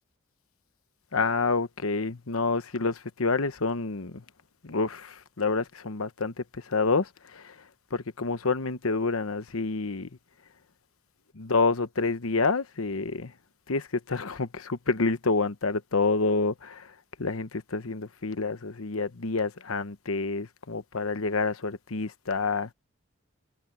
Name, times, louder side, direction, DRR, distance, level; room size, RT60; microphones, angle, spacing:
voice 1, 1.1-4.2 4.6-7.5 7.9-10.1 11.4-13.3 13.7-16.9 17.2-22.7, left 3 dB, 80° left, 1.1 m, -28 dB
head